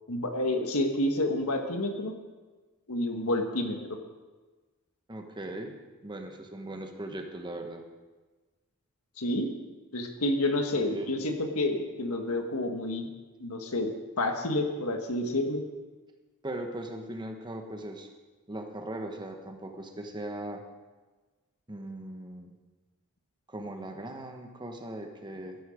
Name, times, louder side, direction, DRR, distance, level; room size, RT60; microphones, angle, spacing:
voice 1, 0.1-2.1 2.9-4.0 9.2-9.5 9.9-13.1 13.4-15.6, left 1 dB, 75° left, 4 dB, 1.5 m, -29 dB
voice 2, 5.1-5.7 6.0-7.8 10.7-11.2 16.4-18.1 18.5-20.6 21.7-22.5 23.5-25.6, right 1 dB, 20° right, 4 dB, 1.2 m, -39 dB
14.5 x 10.5 x 5.1 m, 1.3 s
head